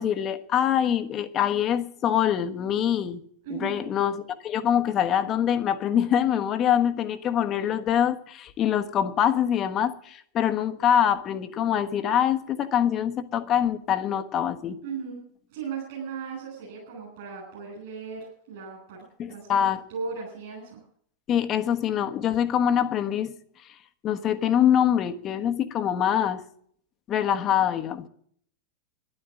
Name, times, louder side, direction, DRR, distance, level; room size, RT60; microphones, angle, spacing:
voice 1, 0.0-3.2 3.5-4.2 4.4-14.8 19.2-19.8 21.3-23.3 24.0-26.4 27.1-28.1, left 9 dB, 30° left, 1.2 m, -24 dB
voice 2, 3.4-3.8 14.8-15.2 15.5-19.5 19.9-20.8, right 5 dB, 55° right, 8.0 m, -37 dB
13.5 x 11.5 x 7.6 m
figure-of-eight pair, 90°, 0 cm